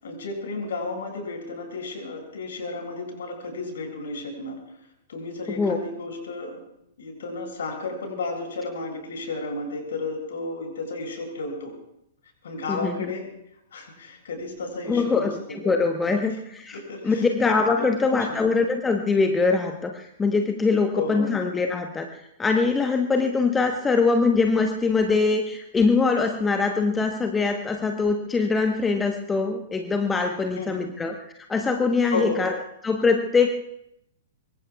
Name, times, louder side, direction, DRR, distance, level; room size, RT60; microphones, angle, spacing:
voice 1, 0.0-4.6 5.1-6.6 7.0-11.8 12.4-13.3 13.7-15.7 16.7-17.2 17.7-18.4 20.9-21.3 30.6-30.9 32.1-32.4, left 3 dB, 60° left, 1 dB, 6.6 m, -33 dB
voice 2, 12.7-13.1 14.9-16.8 17.0-31.1 31.5-32.6 32.8-33.5, left 4 dB, 10° left, 4 dB, 1.2 m, -23 dB
25.0 x 23.5 x 2.4 m, 0.79 s
figure-of-eight pair, 105°, 0 cm